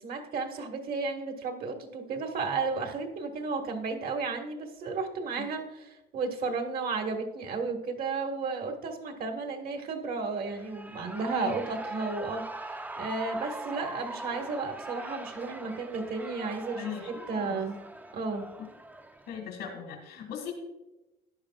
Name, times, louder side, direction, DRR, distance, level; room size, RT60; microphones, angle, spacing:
voice 1, 0.0-17.8 18.1-18.5, right 4 dB, 60° right, 4 dB, 1.7 m, -33 dB
Shout / Cheering, 10.4-19.4, right 2 dB, 10° right, 0.4 m, -42 dB
voice 2, 16.8-17.6 18.6-18.7 19.3-20.5, left 7 dB, 90° left, 1 dB, 1.9 m, -38 dB
13.5 x 10.5 x 2.4 m, 0.99 s
cardioid pair, 110°, 17 cm